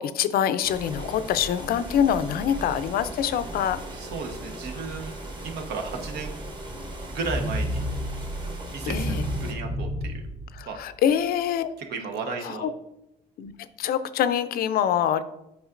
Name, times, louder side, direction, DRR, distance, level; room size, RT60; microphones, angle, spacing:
voice 1, 0.0-3.8 8.8-9.2 10.5-11.7 12.4-12.7 13.4-15.2, left 9 dB, 65° left, 13 dB, 0.4 m, -25 dB
sound 1, 0.6-9.5, right 1 dB, 30° right, 1.1 m, -38 dB
voice 2, 3.9-5.2 5.4-6.4 7.1-7.8 8.7-10.2 10.7-10.8 11.9-12.7, right 4 dB, 80° right, 4 dB, 1.0 m, -34 dB
sound 2, 7.2-11.2, equal, 10° right, 0.7 m, -31 dB
8.0 x 4.9 x 2.5 m, 0.85 s
cardioid pair, 115°, 17 cm